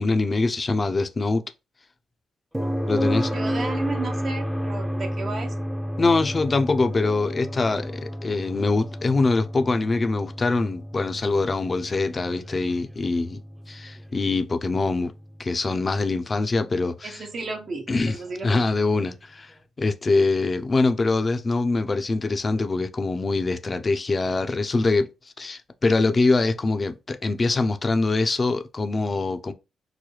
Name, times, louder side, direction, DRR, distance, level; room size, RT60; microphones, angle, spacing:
voice 1, 0.0-1.4 2.9-3.3 6.0-13.4 13.7-15.1 15.4-17.3 17.9-18.2 18.4-19.5 19.8-25.1 25.4-29.5, left 3 dB, 40° left, 0.5 m, -23 dB
sound 1, 2.5-16.4 18.6-18.7, equal, 5° right, 0.6 m, -31 dB
voice 2, 3.3-5.5 17.0-18.6, right 3 dB, 60° right, 0.8 m, -33 dB
3.9 x 2.2 x 3.1 m
supercardioid pair, 55°, 0 cm